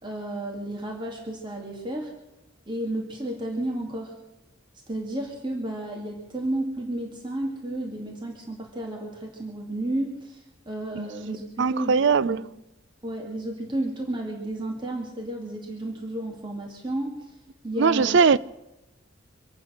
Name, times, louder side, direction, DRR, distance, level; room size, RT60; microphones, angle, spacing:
voice 1, 0.0-2.1 2.7-4.1 4.9-12.4 13.0-17.3 17.6-18.4, right 1 dB, 25° right, 2.3 m, -32 dB
voice 2, 11.6-12.4 17.8-18.4, right 5 dB, 65° right, 0.5 m, -20 dB
25.0 x 8.9 x 6.5 m
head